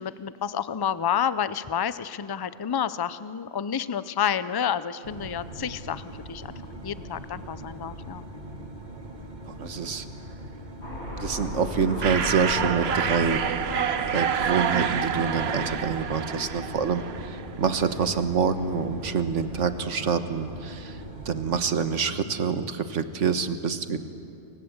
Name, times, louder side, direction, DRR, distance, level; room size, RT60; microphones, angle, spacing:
voice 1, 0.0-6.5 6.8-8.2, left 8 dB, 30° left, 15 dB, 0.4 m, -29 dB
sound 1, 5.0-21.7, right 1 dB, 40° right, 1.8 m, -41 dB
voice 2, 9.6-10.0 11.2-13.4 14.1-24.0, right 6 dB, 75° right, 10 dB, 1.6 m, -26 dB
Aircraft, 10.8-17.1, left 1 dB, 65° left, 5.2 m, -37 dB
sound 2, 12.0-17.5, right 7 dB, 60° right, 1.1 m, -28 dB
29.5 x 25.0 x 8.0 m, 2.8 s
omnidirectional pair, 1.3 m